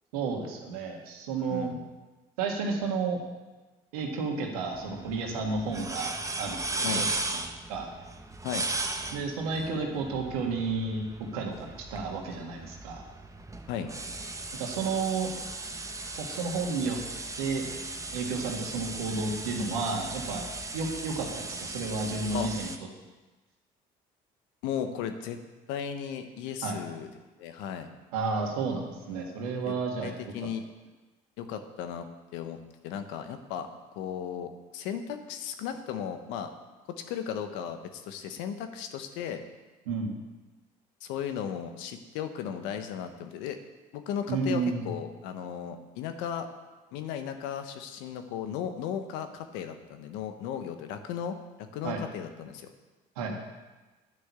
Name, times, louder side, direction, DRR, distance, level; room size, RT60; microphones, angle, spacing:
voice 1, 0.1-1.7 2.4-3.2 3.9-7.1 7.7-7.9 9.1-13.0 14.6-15.3 16.2-17.0 17.4-17.6 18.1-20.5 20.7-22.7 26.6-26.8 28.1-30.1 39.9-40.2 44.3-44.9 51.8-52.0 53.2-53.4, right 4 dB, 90° right, 1 dB, 1.8 m, -31 dB
voice 2, 1.4-1.8 6.8-7.0 8.4-8.7 13.7-13.9 22.3-22.5 24.6-25.4 25.7-27.1 27.4-27.9 29.2-29.5 30.0-30.6 31.4-33.7 33.9-36.5 37.1-39.4 41.0-43.6 43.9-46.5 46.9-51.4 51.7-52.7, left 8 dB, 80° left, 8 dB, 1.1 m, -36 dB
sound 1, 4.7-22.8, right 2 dB, 15° right, 1.2 m, -37 dB
10.5 x 6.5 x 8.4 m, 1.2 s
hypercardioid pair, 65°, 19 cm